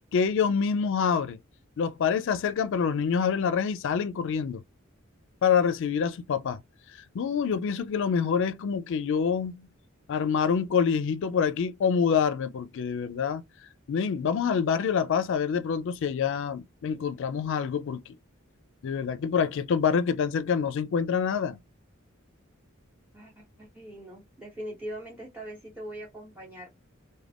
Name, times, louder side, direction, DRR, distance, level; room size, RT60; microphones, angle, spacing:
voice 1, 0.1-1.4 1.8-4.6 5.4-6.6 7.1-9.5 10.1-13.4 13.9-18.1 18.8-21.6, left 6 dB, 65° left, 0.3 m, -26 dB
voice 2, 23.1-26.7, right 1 dB, 10° right, 0.8 m, -41 dB
2.4 x 2.1 x 3.4 m
head